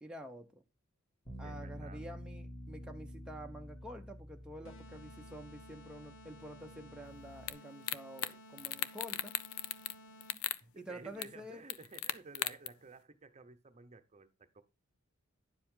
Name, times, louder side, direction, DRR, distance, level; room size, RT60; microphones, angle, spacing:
voice 1, 0.0-0.6 1.4-9.4 10.7-11.6, equal, 5° right, 0.8 m, -48 dB
Bass guitar, 1.3-7.5, equal, 20° left, 2.1 m, -49 dB
voice 2, 1.4-2.0 10.6-14.6, right 3 dB, 30° right, 0.8 m, -54 dB
sound 1, 4.6-10.6, equal, 65° left, 1.2 m, -56 dB
sound 2, 7.5-7.6 7.9-8.3 8.6-9.9 10.2-10.6 11.2-11.3 11.7-12.7, left 12 dB, 80° left, 0.6 m, -36 dB
10.5 x 7.4 x 3.8 m
head